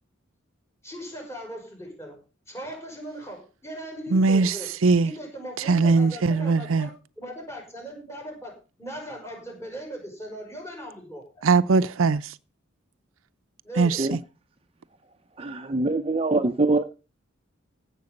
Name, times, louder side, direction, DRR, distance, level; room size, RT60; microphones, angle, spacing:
voice 1, 0.8-2.2 2.5-4.7 5.0-11.4 13.6-14.1, equal, 15° left, 5.4 m, -39 dB
voice 2, 4.1-5.1 5.6-6.9 11.4-12.3 13.8-14.2, right 4 dB, 85° right, 0.6 m, -21 dB
voice 3, 15.4-16.8, right 2 dB, 30° right, 0.7 m, -24 dB
15.5 x 7.4 x 5.3 m
head